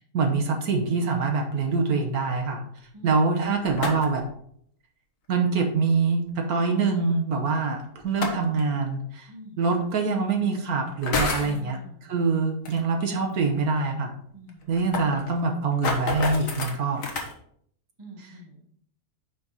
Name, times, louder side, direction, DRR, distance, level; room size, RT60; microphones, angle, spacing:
voice 1, 0.1-2.6 3.0-4.2 5.3-9.3 9.6-11.8 12.1-14.1 14.7-17.0, right 4 dB, 65° right, 3 dB, 1.3 m, -24 dB
voice 2, 2.9-3.3 9.3-9.6 11.4-12.2 14.3-14.7 18.0-18.6, right 2 dB, 20° right, 1 dB, 1.1 m, -45 dB
sound 1, 3.6-4.3 5.9-6.0 8.0-8.6 9.7-9.8 10.9-11.6 12.6-12.8 13.1-13.2 13.6-13.7 13.9-14.0 14.5-17.3, left 3 dB, 55° left, 1.5 m, -29 dB
5.9 x 5.2 x 4.0 m, 0.66 s
omnidirectional pair, 1.8 m